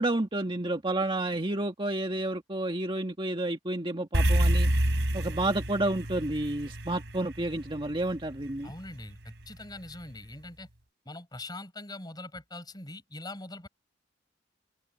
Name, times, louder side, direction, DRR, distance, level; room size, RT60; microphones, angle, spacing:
voice 1, 0.0-4.7 5.1-8.7, right 1 dB, 30° right, 1.8 m, -30 dB
sound 1, 4.1-8.7, right 1 dB, 75° right, 3.6 m, -27 dB
voice 2, 8.6-10.7 11.0-13.7, left 2 dB, 25° left, 7.5 m, -42 dB
open air
head